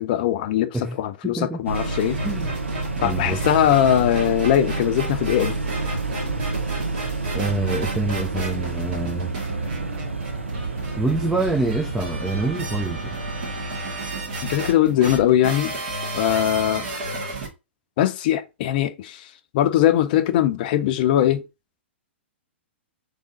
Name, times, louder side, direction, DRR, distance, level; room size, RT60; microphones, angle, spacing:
voice 1, 0.0-2.2 3.0-5.6 14.4-15.7 16.1-16.9 18.0-19.3 19.5-21.4, left 11 dB, 45° left, 0.5 m, -20 dB
voice 2, 1.2-1.6 2.2-2.6 3.0-3.4 7.3-9.4 11.0-13.2, right 2 dB, 5° right, 0.4 m, -26 dB
sound 1, 1.7-17.5, right 2 dB, 50° right, 2.1 m, -33 dB
sound 2, 1.7-13.5, right 3 dB, 85° right, 0.7 m, -29 dB
3.6 x 3.4 x 4.0 m
figure-of-eight pair, 110°, 6 cm